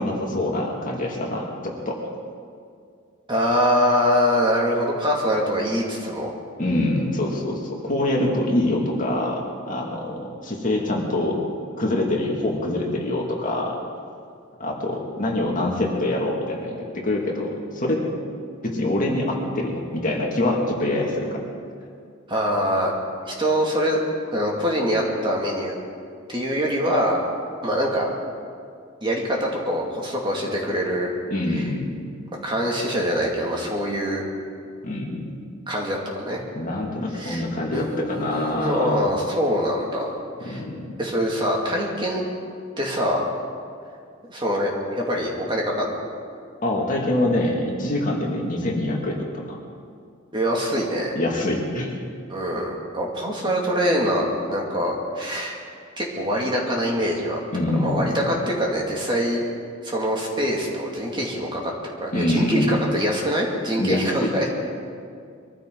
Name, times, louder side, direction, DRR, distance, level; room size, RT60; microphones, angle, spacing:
voice 1, 0.0-2.0 6.6-9.4 9.7-11.4 11.8-13.8 14.6-18.0 18.6-21.4 31.3-32.0 34.8-35.3 36.6-39.1 40.4-40.8 46.6-49.6 51.1-52.0 57.5-58.2 62.1-62.8 63.8-64.3, left 1 dB, 40° left, -1 dB, 2.3 m, -25 dB
voice 2, 3.3-6.3 22.3-22.9 23.3-24.0 24.3-25.7 26.3-27.2 27.6-28.1 29.0-31.1 31.6-31.7 32.4-34.2 35.7-36.4 37.1-37.4 37.7-40.1 40.4-40.6 41.0-42.2 42.8-43.2 44.3-46.0 50.3-51.2 52.3-55.5 56.0-57.4 57.8-59.4 59.8-64.5, equal, 25° right, -2 dB, 2.3 m, -24 dB
23.0 x 14.5 x 3.9 m, 2.3 s
head